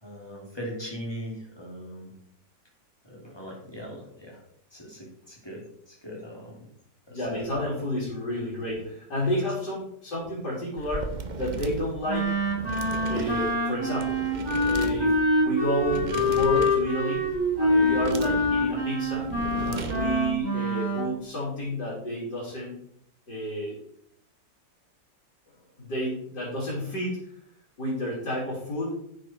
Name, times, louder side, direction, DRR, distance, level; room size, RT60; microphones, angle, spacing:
voice 1, 0.0-2.1 3.0-4.4 4.7-6.6 7.1-7.8 9.2-9.4, equal, 15° left, -2 dB, 3.2 m, -40 dB
voice 2, 7.1-12.3 13.1-14.2 14.7-17.2 17.6-19.3 19.7-22.8 23.3-23.7 25.8-27.3 27.8-29.0, equal, 75° left, -7 dB, 4.4 m, -30 dB
sound 1, 10.8-20.4, right 3 dB, 40° right, 0.7 m, -36 dB
Wind instrument woodwind instrument, 12.1-21.1, left 1 dB, 15° right, 4.3 m, -25 dB
9.8 x 7.4 x 4.6 m, 0.70 s
omnidirectional pair, 1.8 m